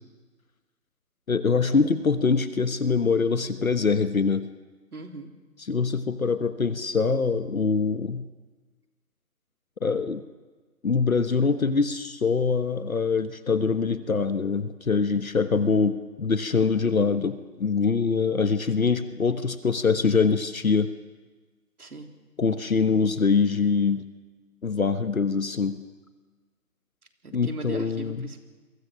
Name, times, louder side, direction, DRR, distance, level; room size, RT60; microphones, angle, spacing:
voice 1, 1.3-4.5 5.7-8.3 9.8-10.2 10.8-20.9 22.4-24.1 24.6-25.8 27.3-28.3, left 5 dB, 60° left, 10 dB, 1.3 m, -24 dB
voice 2, 4.9-5.3 21.8-22.1 27.2-28.4, right 3 dB, 65° right, 4 dB, 3.5 m, -39 dB
28.5 x 23.5 x 6.4 m, 1.3 s
figure-of-eight pair, 175°, 48 cm